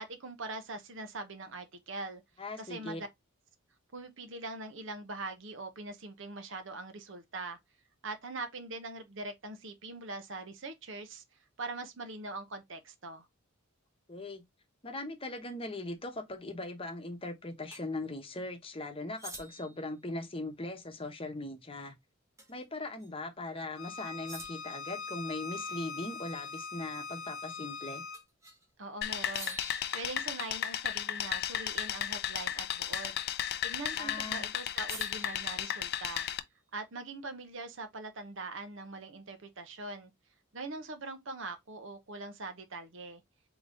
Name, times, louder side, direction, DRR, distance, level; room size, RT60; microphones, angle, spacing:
voice 1, 0.0-2.2 2.6-3.1 3.9-7.6 8.0-11.2 11.6-13.3 28.8-29.6 29.9-33.2 33.6-36.3 36.7-40.1 40.5-43.2, right 3 dB, 60° right, 0.9 m, -42 dB
voice 2, 2.4-3.0 14.1-14.4 14.8-21.9 22.5-28.0 33.9-34.5, left 2 dB, 25° left, 1.0 m, -40 dB
sound 1, 17.7-17.8 19.2-19.8 22.4-22.6 23.0-23.1 24.3-24.8 28.1-28.7 29.3-30.7 33.0-33.4 34.9-36.3, right 2 dB, 15° right, 1.1 m, -48 dB
Bowed string instrument, 23.8-28.2, left 4 dB, 85° left, 0.7 m, -42 dB
sound 2, 29.0-36.4, left 11 dB, 50° left, 0.4 m, -34 dB
3.9 x 3.0 x 3.8 m
head